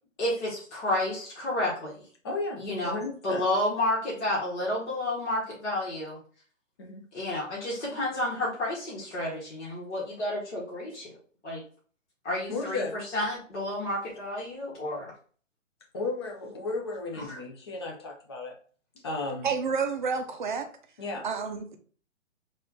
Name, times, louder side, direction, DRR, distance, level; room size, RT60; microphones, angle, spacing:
voice 1, 0.2-2.1 2.6-6.2 7.1-11.2 11.4-11.6 12.2-15.1 17.1-17.4, left 1 dB, 60° left, -6 dB, 1.8 m, -31 dB
voice 2, 2.2-3.4 6.8-7.0 12.5-13.0 15.9-18.5 19.0-19.5 21.0-21.2, left 3 dB, 20° left, 0 dB, 0.5 m, -34 dB
voice 3, 19.4-20.7 21.2-21.8, right 5 dB, 40° right, 6 dB, 0.6 m, -29 dB
4.1 x 2.5 x 3.6 m, 0.44 s
hypercardioid pair, 150°, 39 cm